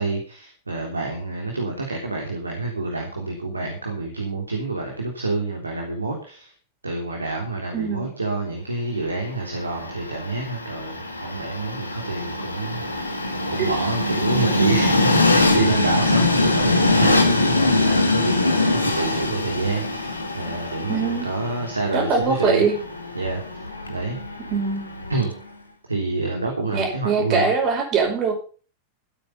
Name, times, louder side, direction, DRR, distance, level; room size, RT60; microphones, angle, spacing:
voice 1, 0.0-6.5 6.8-14.9 15.3-22.6 23.2-23.4 23.9-24.2 25.1-25.3 25.9-27.5, right 3 dB, 80° right, 0 dB, 3.4 m, -28 dB
voice 2, 7.7-8.1 13.6-13.7 20.9-21.3 21.9-22.8 24.5-24.8 26.7-28.3, right 5 dB, 35° right, 3 dB, 5.2 m, -22 dB
Train, 9.3-25.4, left 2 dB, 80° left, 2.0 m, -23 dB
15.0 x 8.8 x 5.7 m, 0.39 s
figure-of-eight pair, 90°, 0 cm